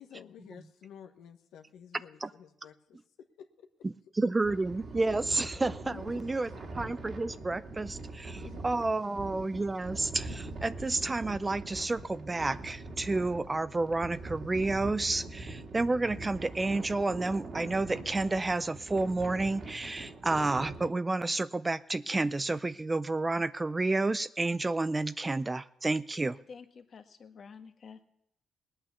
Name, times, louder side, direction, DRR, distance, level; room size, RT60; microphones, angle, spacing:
voice 1, 0.0-3.7 5.8-6.3 8.4-8.6, left 9 dB, 80° left, 1.2 m, -51 dB
voice 2, 3.8-26.4, right 2 dB, 20° right, 0.5 m, -30 dB
sound 1, 4.4-20.9, right 2 dB, 50° right, 2.0 m, -43 dB
voice 3, 26.5-28.0, left 5 dB, 50° left, 1.4 m, -49 dB
19.0 x 8.8 x 7.0 m
cardioid pair, 90°, 0 cm